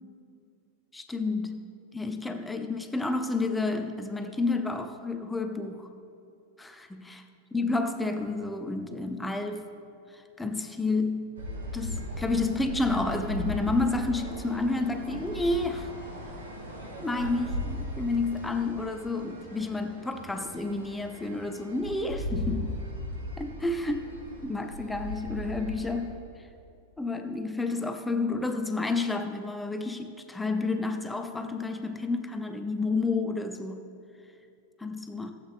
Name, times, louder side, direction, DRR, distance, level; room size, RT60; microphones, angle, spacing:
voice 1, 0.9-1.7 1.9-5.9 6.6-7.2 7.5-9.7 10.1-11.4 11.7-15.9 17.0-22.8 23.4-24.2 24.4-26.1 27.0-33.8 34.8-35.3, left 3 dB, 10° left, 7 dB, 0.6 m, -30 dB
sound 1, 11.4-26.1, left 1 dB, 70° right, 2.0 m, -37 dB
15.0 x 8.3 x 3.6 m, 2.6 s
figure-of-eight pair, 90°, 0 cm